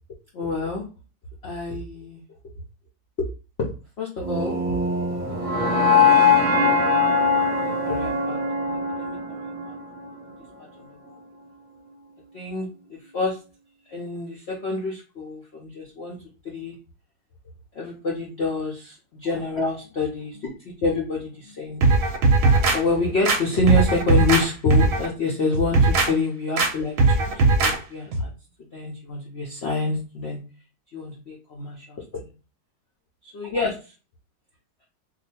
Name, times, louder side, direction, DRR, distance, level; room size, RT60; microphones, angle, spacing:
voice 1, 0.3-0.8 1.4-2.2 4.0-4.6 5.1-6.4 7.6-8.4 8.7-9.5 12.3-12.7 13.1-13.4 13.9-16.2 16.4-16.8 17.7-20.5 20.8-21.3 21.6-22.0 22.7-28.3 28.7-30.4 30.9-32.3 33.3-33.7, left 2 dB, 60° left, -3 dB, 0.6 m, -27 dB
sound 1, 4.2-10.3, left 4 dB, 35° right, 0.8 m, -21 dB
sound 2, 21.8-22.8 23.3-24.4 24.7-25.1 25.5-26.1 26.6-26.7 27.0-27.8 28.1-28.2, right 3 dB, 60° right, 0.9 m, -18 dB
2.7 x 2.4 x 4.1 m, 0.34 s
omnidirectional pair, 1.9 m